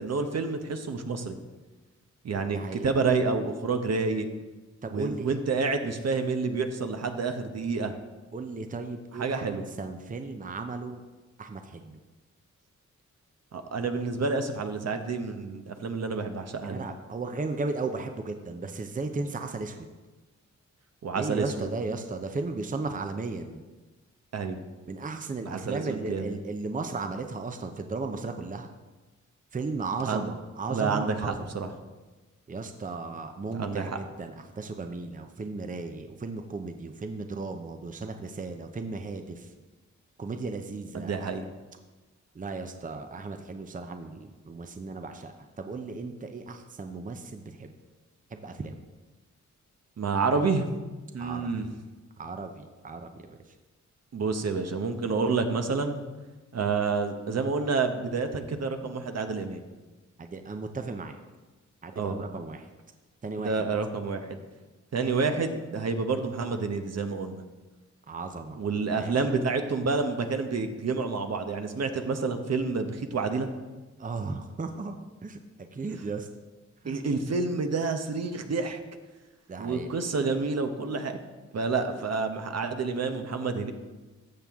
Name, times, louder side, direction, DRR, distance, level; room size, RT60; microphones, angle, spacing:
voice 1, 0.0-1.4 2.2-4.3 4.9-7.9 9.1-9.7 13.5-16.8 21.0-21.7 24.3-24.6 25.4-26.4 30.0-30.3 30.7-31.7 33.5-34.0 40.9-41.4 50.0-50.7 51.1-51.7 54.1-56.0 56.5-59.6 62.0-62.2 63.4-64.4 64.9-67.4 68.6-73.5 76.9-78.8 79.6-81.2 81.5-83.7, right 4 dB, 60° right, 6 dB, 1.0 m, -29 dB
voice 2, 2.5-2.9 4.8-5.3 8.3-9.5 9.8-11.0 11.4-12.0 16.6-19.9 21.2-23.6 24.9-28.7 29.5-31.5 32.5-39.5 40.2-41.3 42.4-47.7 48.3-48.8 51.2-51.5 52.2-53.4 60.2-61.2 61.8-62.7 63.2-63.5 68.1-68.6 68.9-69.1 74.0-75.0 75.2-75.4 75.7-76.3 76.8-77.0 79.5-79.9, right 3 dB, 25° right, 6 dB, 0.7 m, -35 dB
13.5 x 7.0 x 3.6 m, 1.2 s
cardioid pair, 80°, 30 cm